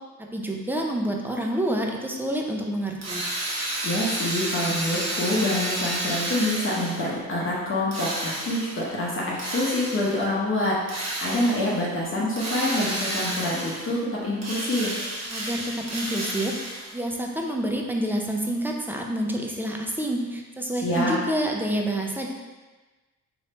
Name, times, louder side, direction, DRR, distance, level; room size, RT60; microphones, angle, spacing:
voice 1, 0.3-3.3 15.3-16.5 16.9-22.3, right 1 dB, 5° right, 0 dB, 0.6 m, -28 dB
Drill, 3.0-7.2 7.9-8.9 9.4-10.2 10.9-11.8 12.4-14.0 14.4-17.0, right 1 dB, 45° right, 1.2 m, -31 dB
voice 2, 3.8-14.9 20.8-21.2, left 1 dB, 35° left, -6 dB, 1.0 m, -26 dB
3.2 x 2.8 x 4.3 m, 1.3 s
supercardioid pair, 70°, 35 cm